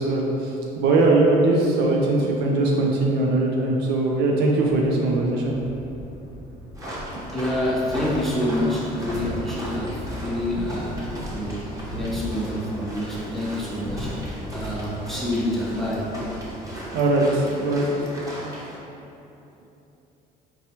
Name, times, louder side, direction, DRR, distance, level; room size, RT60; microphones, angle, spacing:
voice 1, 0.0-5.5 14.9-15.2 16.9-17.9, right 2 dB, 80° right, -1 dB, 0.4 m, -21 dB
Thunder, 4.7-18.0, equal, 85° left, 0.6 m, -38 dB
sound 1, 6.7-18.8, right 1 dB, 20° right, 0.9 m, -37 dB
voice 2, 7.3-11.6 11.9-14.2 14.5-16.1, left 1 dB, ahead, -6 dB, 0.6 m, -27 dB
4.1 x 2.2 x 2.8 m, 2.9 s
cardioid pair, 110°, 17 cm